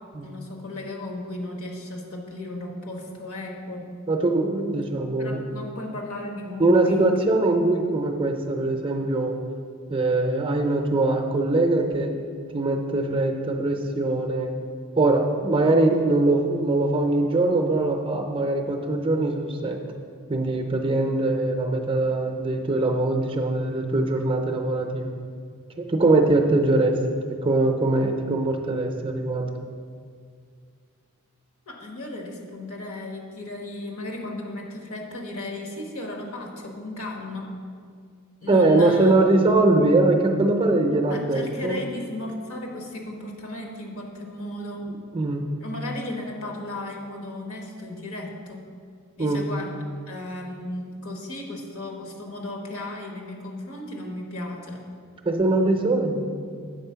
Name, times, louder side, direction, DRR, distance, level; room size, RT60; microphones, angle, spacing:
voice 1, 0.2-3.9 5.2-7.3 31.7-37.5 38.4-39.1 41.1-44.9 45.6-48.7 49.2-49.7 50.1-54.8, left 1 dB, 70° left, 1 dB, 1.2 m, -35 dB
voice 2, 4.1-5.4 6.6-9.4 9.9-12.1 12.5-14.5 15.0-19.8 20.3-25.1 25.8-27.0 27.3-29.5 38.5-41.8 45.1-45.4 49.2-49.5 55.2-56.3, right 2 dB, 25° right, 4 dB, 0.5 m, -22 dB
7.9 x 4.3 x 5.6 m, 2.1 s
head